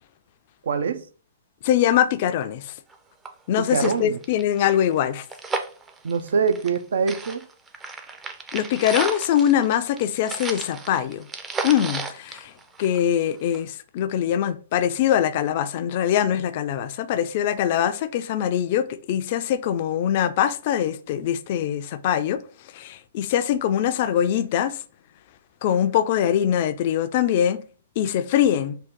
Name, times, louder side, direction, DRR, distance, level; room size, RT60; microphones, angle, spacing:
voice 1, 0.6-1.1 3.6-4.2 6.0-7.5, right 5 dB, 70° right, 0.4 m, -24 dB
voice 2, 1.6-2.7 3.5-5.2 8.5-11.3 11.6-12.5 12.8-22.4 22.7-24.8 25.6-27.6 28.0-28.8, left 10 dB, 50° left, 0.3 m, -23 dB
sound 1, 2.9-3.0 3.2-3.3 3.6-6.8 7.1-13.2 13.5-13.6, right 4 dB, 15° right, 0.5 m, -33 dB
3.7 x 2.2 x 3.6 m
hypercardioid pair, 125°, 0 cm